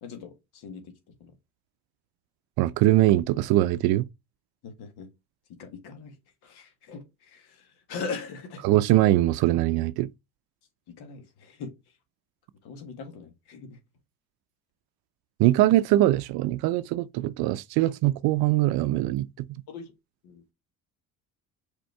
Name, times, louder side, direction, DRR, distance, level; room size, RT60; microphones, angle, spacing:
voice 1, 0.0-0.9 1.2-1.3 4.6-5.1 5.6-6.1 6.4-8.6 10.9-11.7 12.6-13.8 19.7-19.9 20.2-20.4, left 4 dB, 75° left, 1.6 m, -40 dB
voice 2, 2.6-4.0 8.6-10.1 15.4-19.6, right 15 dB, 70° right, 0.5 m, -22 dB
5.2 x 4.4 x 4.5 m
supercardioid pair, 80°, 39 cm